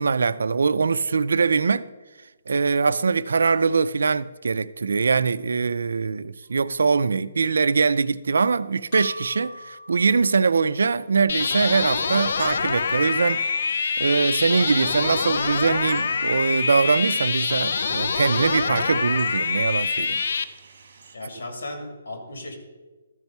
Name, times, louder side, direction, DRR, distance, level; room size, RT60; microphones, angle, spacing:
voice 1, 0.0-1.9 2.5-13.4 14.0-20.2, right 5 dB, 85° right, 0.4 m, -22 dB
sound 1, 6.5-6.6 8.9-10.8 12.4-14.0 15.9-17.3, left 2 dB, 25° left, 2.4 m, -42 dB
sound 2, 11.3-20.4, left 5 dB, 50° left, 0.4 m, -25 dB
sound 3, 12.0-21.2, right 4 dB, 50° right, 1.5 m, -51 dB
voice 2, 21.1-22.6, left 2 dB, 75° left, 2.3 m, -35 dB
13.5 x 4.6 x 5.4 m
hypercardioid pair, 180°, 0 cm